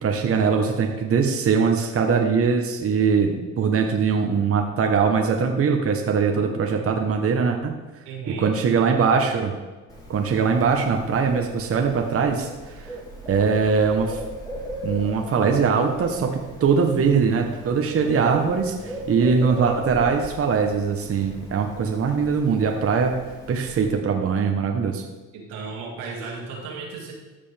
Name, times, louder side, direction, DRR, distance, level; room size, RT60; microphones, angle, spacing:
voice 1, 0.0-7.8 8.3-9.5 10.1-12.9 13.3-14.2 14.8-23.2 23.5-25.0, right 5 dB, 40° right, 3 dB, 1.1 m, -21 dB
voice 2, 8.1-8.5 25.3-27.1, right 4 dB, 85° right, -2 dB, 2.4 m, -34 dB
Bird, 9.9-23.9, right 1 dB, 10° left, 2.9 m, -38 dB
14.0 x 5.2 x 3.4 m, 1.2 s
supercardioid pair, 80°, 34 cm